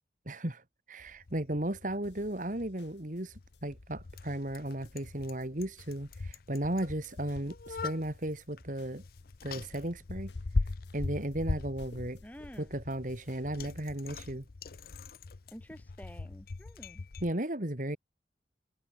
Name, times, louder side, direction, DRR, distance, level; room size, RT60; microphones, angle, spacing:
voice 1, 0.3-9.0 9.4-10.3 10.9-12.2 12.6-14.4 17.2-18.0, right 1 dB, 45° right, 2.4 m, -35 dB
Bicycle, 1.0-17.3, left 3 dB, 55° left, 0.6 m, -40 dB
sound 1, 2.0-13.9, left 1 dB, 90° left, 7.7 m, -60 dB
voice 2, 12.2-12.8 15.5-17.1, equal, 10° left, 6.3 m, -50 dB
head